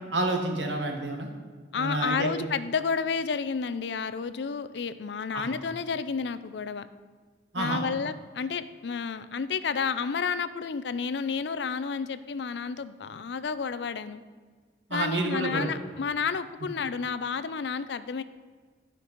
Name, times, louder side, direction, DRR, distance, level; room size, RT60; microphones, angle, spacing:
voice 1, 0.1-1.3 1.8-2.3 5.3-5.5 7.5-7.8 14.9-15.7, right 2 dB, 90° right, 3 dB, 1.5 m, -29 dB
voice 2, 1.7-6.9 7.6-14.2 14.9-18.2, left 5 dB, 70° left, 13 dB, 0.5 m, -31 dB
11.5 x 5.3 x 6.0 m, 1.5 s
head